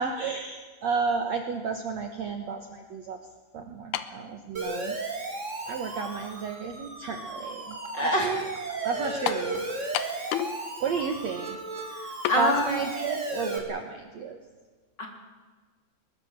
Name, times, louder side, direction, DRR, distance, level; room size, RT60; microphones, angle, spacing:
voice 1, 0.0-3.2 3.5-5.0 5.7-8.5 8.8-9.6 10.8-11.6 12.4-14.4, right 5 dB, 80° right, 4 dB, 1.5 m, -32 dB
sound 1, 3.9-4.2 5.1-5.2 9.3-9.5 9.9-10.6 10.9-11.0 12.2-12.4, left 12 dB, 75° left, 2.5 m, -30 dB
Siren, 4.5-13.6, right 2 dB, 20° right, 2.2 m, -35 dB
voice 2, 7.9-8.4 11.9-12.7 15.0-15.1, left 1 dB, 25° left, 1 dB, 3.1 m, -26 dB
21.5 x 21.0 x 7.5 m, 1.4 s
omnidirectional pair, 5.4 m